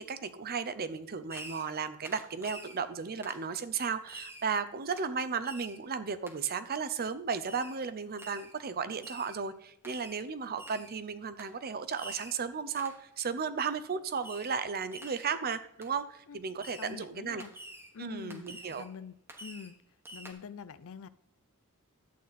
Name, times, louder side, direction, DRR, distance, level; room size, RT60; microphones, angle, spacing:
voice 1, 0.0-17.4 18.0-18.8, right 5 dB, 45° right, 12 dB, 0.6 m, -35 dB
Fireworks, 1.3-1.8 2.0-2.8 3.2-3.4 4.1-4.5 4.9-5.1 5.4-5.8 6.3-6.4 7.5-7.8 8.2-8.5 9.0-9.4 9.8-10.2 10.6-11.0 11.4-11.5 12.0-12.4 12.8-13.0 14.2-14.6 14.9-15.3 15.8-15.9 16.6-17.0 17.4-17.9 18.3-18.9 19.3-19.7 20.0-20.3, right 1 dB, 10° right, 1.2 m, -47 dB
voice 2, 16.8-17.5 17.9-19.8 20.1-21.1, left 5 dB, 65° left, 15 dB, 0.5 m, -45 dB
11.0 x 8.3 x 4.1 m, 0.70 s
head